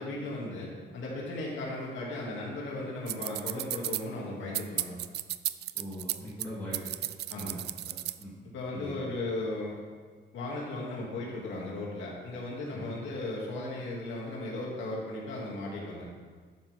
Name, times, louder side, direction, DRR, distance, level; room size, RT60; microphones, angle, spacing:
voice 1, 0.0-5.0 7.3-7.6 8.5-9.8 10.3-16.1, left 2 dB, 90° left, -4 dB, 2.5 m, -36 dB
sound 1, 3.1-4.0 4.5-6.5 6.7-8.2, right 13 dB, 60° right, 0.4 m, -33 dB
voice 2, 5.7-6.9 7.4-8.3 8.7-8.9 12.7-12.8, equal, 10° left, -10 dB, 2.5 m, -41 dB
11.5 x 9.9 x 3.6 m, 1.5 s
cardioid pair, 165°, 19 cm